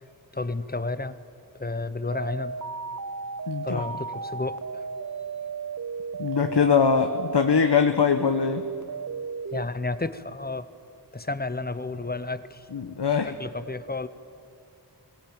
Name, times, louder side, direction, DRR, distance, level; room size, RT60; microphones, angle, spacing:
voice 1, 0.3-1.2 1.5-2.5 3.6-4.9 9.5-10.7 11.1-12.7 13.2-14.1, left 3 dB, 25° left, 14 dB, 0.9 m, -31 dB
sound 1, 2.1-7.7 8.2-9.7, right 5 dB, 45° right, 0.6 m, -35 dB
voice 2, 3.5-3.8 6.2-8.6 12.7-13.3, left 6 dB, 80° left, 7 dB, 1.0 m, -22 dB
20.0 x 17.0 x 9.2 m, 2.5 s
wide cardioid pair, 40°, 41 cm